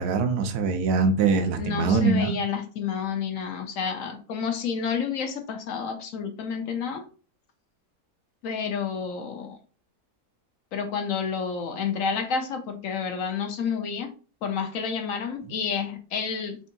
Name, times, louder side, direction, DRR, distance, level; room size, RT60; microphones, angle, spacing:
voice 1, 0.0-2.4, right 4 dB, 70° right, 6 dB, 1.2 m, -23 dB
voice 2, 1.6-7.0 8.4-9.6 10.7-14.1 14.4-16.6, left 6 dB, 65° left, 6 dB, 0.8 m, -30 dB
3.5 x 2.7 x 3.9 m, 0.37 s
omnidirectional pair, 1.9 m